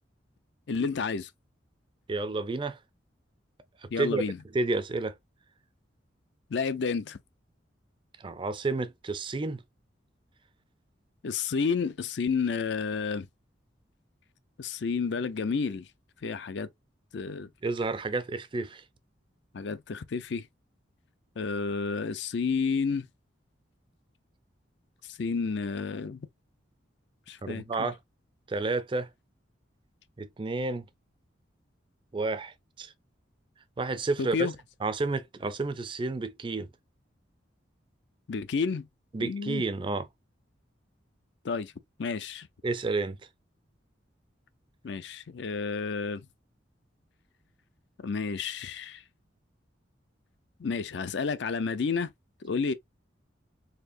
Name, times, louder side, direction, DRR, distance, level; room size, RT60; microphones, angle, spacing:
voice 1, 0.7-1.3 3.9-4.4 6.5-7.2 11.2-13.3 14.6-15.8 16.2-16.7 17.1-17.5 19.5-20.5 21.4-23.1 25.2-26.2 27.3-27.9 34.2-34.5 38.3-38.9 39.2-39.6 41.4-41.7 42.0-42.5 44.8-46.2 48.0-49.0 50.6-52.1 52.4-52.7, left 5 dB, 65° left, 0.5 m, -30 dB
voice 2, 2.1-2.8 3.8-4.2 4.5-5.1 8.2-9.6 17.6-18.8 27.4-28.0 28.5-29.1 30.2-30.8 32.1-32.9 33.8-34.5 34.8-36.7 39.1-40.1 42.6-43.2, right 3 dB, 25° right, 0.4 m, -30 dB
4.3 x 2.8 x 2.5 m
head